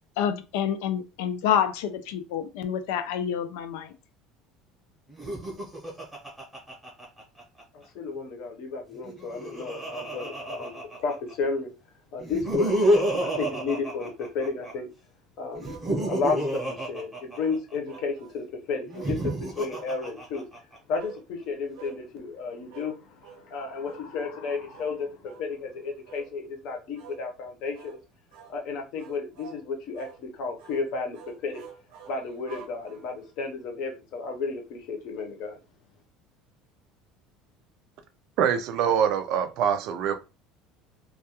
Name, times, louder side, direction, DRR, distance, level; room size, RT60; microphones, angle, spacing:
voice 1, 0.2-3.9, left 8 dB, 90° left, 0.4 m, -28 dB
Laughter, 5.1-7.6 8.9-11.3 12.2-14.7 15.5-18.0 18.8-20.8, right 1 dB, 5° right, 0.8 m, -29 dB
voice 2, 7.7-11.7 12.1-14.9 15.4-20.4 20.9-28.0 28.5-31.6 32.1-35.6, left 4 dB, 50° left, 0.7 m, -33 dB
sound 1, 15.6-16.4 17.4-18.4 18.9-19.9 21.0-21.2 21.7-22.0 22.7-23.0 23.2-23.5 23.8-24.1 24.7-24.9 25.2-25.5 26.0-26.3 26.9-27.2 27.7-28.0 28.3-28.6 29.0-29.6 29.9-30.2 30.6-30.8 31.1-33.3, right 7 dB, 80° right, 0.7 m, -47 dB
voice 3, 38.4-40.1, right 8 dB, 50° right, 0.3 m, -24 dB
2.3 x 2.2 x 2.8 m
cardioid pair, 175°, 0 cm